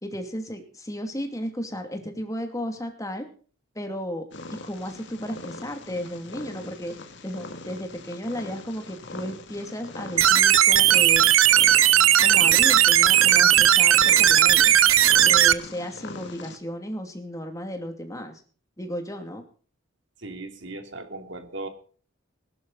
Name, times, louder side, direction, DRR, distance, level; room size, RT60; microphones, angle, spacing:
voice 1, 0.0-3.3 3.7-4.2 4.5-6.9 7.2-11.3 12.2-14.8 15.2-18.4 18.8-19.4, equal, 15° left, 5 dB, 2.6 m, -34 dB
Purr, 4.3-16.6, left 2 dB, 60° left, 2.1 m, -40 dB
sound 1, 10.2-15.5, right 11 dB, 80° right, 0.8 m, -17 dB
voice 2, 20.2-21.7, right 2 dB, 60° right, 6 dB, 2.8 m, -37 dB
19.5 x 11.5 x 4.1 m, 0.42 s
head